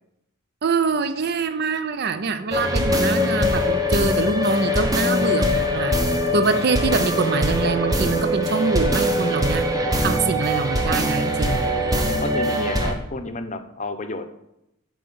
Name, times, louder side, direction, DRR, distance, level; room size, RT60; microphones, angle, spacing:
voice 1, 0.6-5.9 6.3-9.7 10.0-11.7, right 4 dB, 45° right, 11 dB, 0.4 m, -24 dB
sound 1, 2.5-12.9, left 1 dB, 15° right, 0.9 m, -22 dB
voice 2, 12.2-14.2, left 2 dB, 35° left, 8 dB, 0.7 m, -31 dB
7.4 x 4.8 x 6.8 m, 0.83 s
head